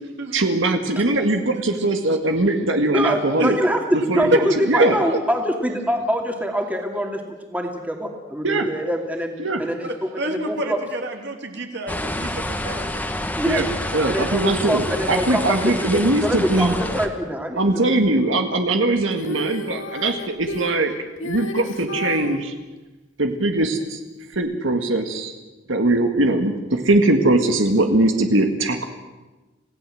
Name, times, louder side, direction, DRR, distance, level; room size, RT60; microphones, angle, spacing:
voice 1, 0.3-3.6 4.1-4.3 4.7-4.9 8.4-8.7 9.4-9.6 13.5-13.7 13.9-16.7 17.6-20.9 21.2-22.5 23.2-24.0 24.3-25.3 25.7-28.9, right 2 dB, 75° right, 5 dB, 1.9 m, -21 dB
voice 2, 2.9-7.2 7.5-10.8 13.4-13.7 14.0-17.8, equal, 10° right, 2 dB, 2.5 m, -24 dB
voice 3, 4.6-5.2 9.8-13.1, right 1 dB, 60° right, 4 dB, 3.1 m, -28 dB
sound 1, 11.9-17.1, left 1 dB, 10° left, 1.6 m, -28 dB
Female singing, 19.1-22.4 24.3-24.4, left 2 dB, 75° left, 2.4 m, -32 dB
27.5 x 17.0 x 7.7 m, 1.2 s
head